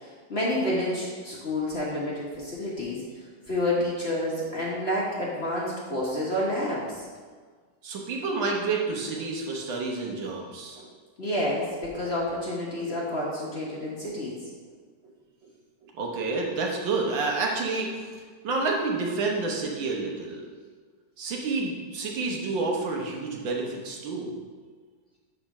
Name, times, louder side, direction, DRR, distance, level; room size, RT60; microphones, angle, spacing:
voice 1, 0.0-3.0 3.5-6.9 11.2-14.4, left 1 dB, 35° left, -5 dB, 1.3 m, -29 dB
voice 2, 7.8-10.9 15.8-18.0 18.4-20.4 21.2-24.3, right 3 dB, 70° right, 0 dB, 1.7 m, -29 dB
5.9 x 5.1 x 6.0 m, 1.5 s
omnidirectional pair, 2.2 m